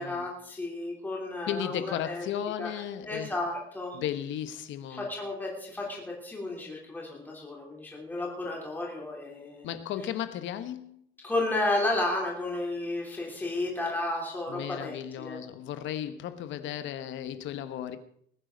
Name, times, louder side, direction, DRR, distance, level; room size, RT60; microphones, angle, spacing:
voice 1, 0.0-2.2 2.6-4.0 4.9-9.7 11.2-15.4, left 2 dB, 10° left, 3.0 m, -33 dB
voice 2, 1.5-3.3 3.9-5.1 9.6-11.0 14.5-18.0, left 10 dB, 65° left, 1.1 m, -35 dB
20.5 x 9.4 x 5.2 m
cardioid pair, 180°, 21 cm